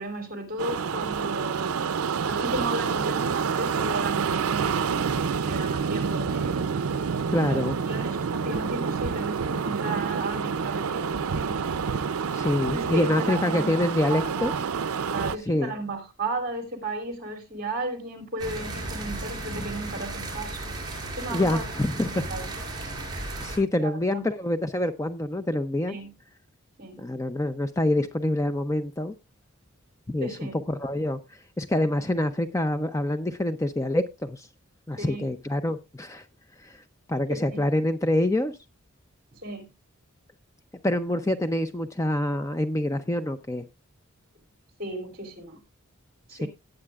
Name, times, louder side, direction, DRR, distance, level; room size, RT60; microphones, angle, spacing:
voice 1, 0.0-1.9 2.2-6.7 7.4-11.6 12.7-14.6 15.1-20.8 21.2-21.6 22.0-22.5 23.8-24.3 25.9-26.1 26.8-27.0 30.2-30.6 35.0-35.3 37.3-37.6 39.3-39.7 44.8-45.6 46.3-46.5, right 2 dB, 40° right, 3.0 m, -34 dB
sound 1, 0.6-15.4, right 6 dB, 80° right, 0.5 m, -28 dB
voice 2, 7.3-7.8 12.3-14.5 15.5-15.7 21.3-22.2 23.1-26.0 27.0-29.1 30.1-34.5 34.9-36.3 36.6-36.8 37.1-38.6 40.8-43.7 46.3-46.5, left 1 dB, 15° left, 0.5 m, -26 dB
sound 2, 18.4-23.6, right 2 dB, 20° right, 4.4 m, -35 dB
17.5 x 8.9 x 2.4 m
head